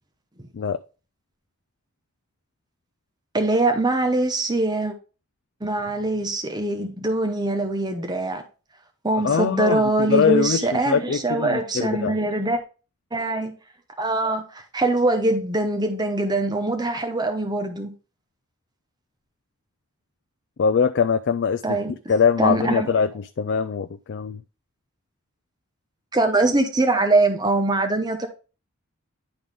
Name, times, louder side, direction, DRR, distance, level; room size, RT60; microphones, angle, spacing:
voice 1, 3.3-4.9 5.6-8.4 9.0-12.6 13.1-13.5 14.0-17.9 21.6-21.9 22.4-22.9 26.1-28.3, right 2 dB, 20° right, 0.9 m, -23 dB
voice 2, 9.2-12.2 20.6-24.4, left 6 dB, 50° left, 0.3 m, -22 dB
10.5 x 3.9 x 3.5 m
head